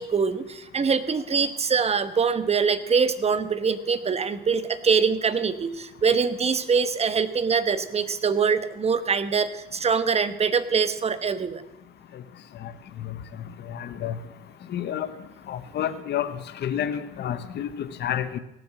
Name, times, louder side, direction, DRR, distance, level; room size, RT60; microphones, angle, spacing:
voice 1, 0.0-11.6, right 5 dB, 30° right, 12 dB, 1.1 m, -24 dB
voice 2, 13.7-14.2 14.7-15.1 15.5-18.4, left 10 dB, 55° left, 11 dB, 1.0 m, -30 dB
17.5 x 6.7 x 7.6 m, 0.91 s
cardioid pair, 95°, 21 cm